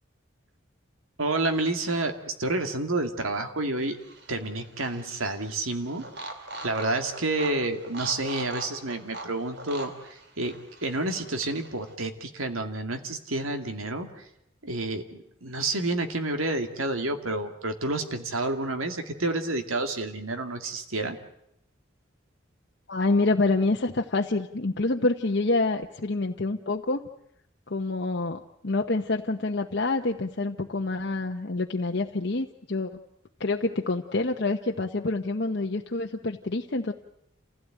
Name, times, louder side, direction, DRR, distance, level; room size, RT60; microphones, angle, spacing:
voice 1, 1.2-4.0 4.3-6.1 6.6-10.5 10.8-14.3 14.6-21.2, right 2 dB, 90° right, 6 dB, 2.4 m, -29 dB
sound 1, 3.8-11.9, right 2 dB, 55° right, 3.0 m, -42 dB
voice 2, 22.9-27.0 27.7-33.0 33.4-36.9, left 2 dB, 55° left, 3 dB, 0.9 m, -27 dB
28.0 x 16.5 x 9.1 m, 0.78 s
head